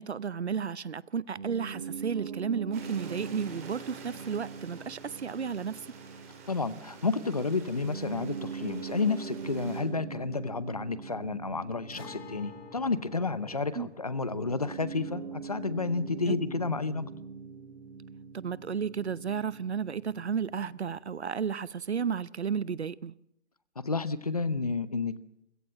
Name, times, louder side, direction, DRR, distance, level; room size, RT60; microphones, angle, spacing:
voice 1, 0.0-5.8 13.7-13.9 16.3-16.4 18.3-23.1, right 6 dB, 65° right, 0.9 m, -33 dB
Piano, 1.4-20.8, right 6 dB, 35° right, 3.8 m, -42 dB
Stream, 2.7-9.8, right 4 dB, 10° right, 2.4 m, -49 dB
voice 2, 6.5-17.1 23.8-25.2, left 4 dB, 30° left, 0.8 m, -31 dB
Guitar, 11.9-19.5 19.8-19.9 21.9-22.0, left 6 dB, 55° left, 2.7 m, -52 dB
29.5 x 16.5 x 7.6 m
hypercardioid pair, 175°, 36 cm